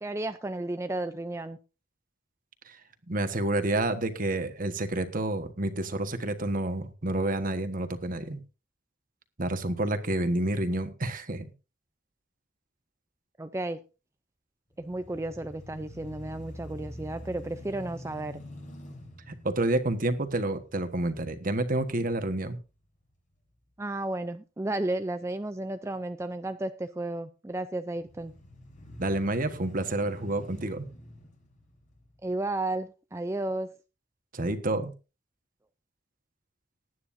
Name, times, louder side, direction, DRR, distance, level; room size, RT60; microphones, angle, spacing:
voice 1, 0.0-1.6 13.4-13.8 14.8-18.4 23.8-28.3 32.2-33.7, right 2 dB, 15° right, 9 dB, 0.5 m, -33 dB
voice 2, 3.1-8.4 9.4-11.5 19.3-22.6 29.0-30.8 34.3-34.9, right 2 dB, 45° right, 9 dB, 1.4 m, -29 dB
sound 1, 14.7-22.8 23.3-23.4 28.0-32.4, equal, 40° left, 6.1 m, -47 dB
19.0 x 9.5 x 2.7 m, 0.31 s
head